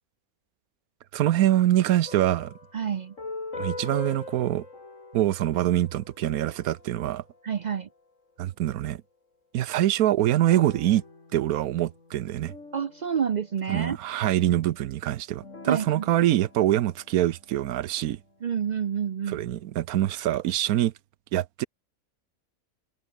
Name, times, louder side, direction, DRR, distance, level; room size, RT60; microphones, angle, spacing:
voice 1, 1.1-2.5 3.6-4.7 5.1-7.2 8.4-9.0 9.5-11.0 11.3-12.5 13.7-18.2 19.3-20.9 21.3-21.7, right 13 dB, 85° right, 1.2 m, -24 dB
sound 1, 2.1-8.0 10.4-14.2 15.4-18.1, left 3 dB, 60° left, 3.7 m, -43 dB
voice 2, 2.7-3.1 7.4-7.9 12.7-14.0 15.7-16.1 18.4-19.4, right 7 dB, 70° right, 0.4 m, -28 dB
omnidirectional pair, 1.5 m